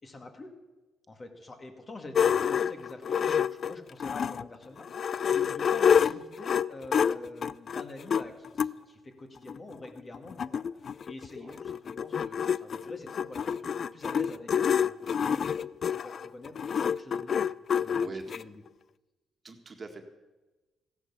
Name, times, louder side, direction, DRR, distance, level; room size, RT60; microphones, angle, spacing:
voice 1, 0.0-0.5 1.1-17.5 17.7-18.0 18.4-18.6, left 2 dB, 35° left, 4 dB, 2.2 m, -46 dB
sound 1, 2.1-4.5 4.9-8.7 9.5-9.6 9.9-10.0 10.1-18.4, left 7 dB, 50° left, 0.4 m, -27 dB
voice 2, 18.0-18.4 19.4-20.0, right 3 dB, 35° right, 5 dB, 1.8 m, -42 dB
15.0 x 11.0 x 7.1 m, 1.2 s
cardioid pair, 90°, 0 cm